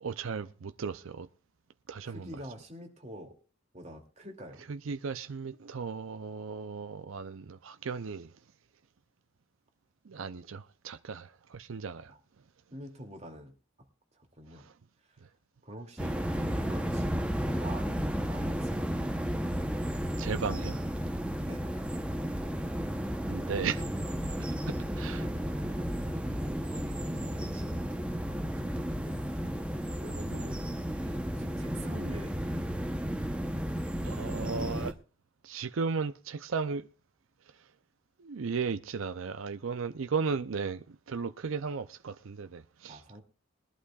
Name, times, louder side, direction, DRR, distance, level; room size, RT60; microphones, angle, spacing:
voice 1, 0.0-1.3 1.9-2.3 4.7-8.3 10.1-12.1 20.2-20.8 23.3-23.8 24.7-25.3 34.0-34.9 35.4-36.9 38.2-43.2, right 5 dB, 75° right, 0.5 m, -35 dB
voice 2, 2.0-3.3 3.7-4.6 12.1-12.2 12.7-13.5 14.4-14.6 15.1-15.2 15.6-19.0 21.4-21.6 25.1-25.9 26.6-29.2 30.0-30.9 31.3-32.9 42.9-43.2, equal, 30° right, 2.5 m, -46 dB
sound 1, 16.0-34.9, equal, 5° right, 0.8 m, -33 dB
21.0 x 11.5 x 2.4 m
head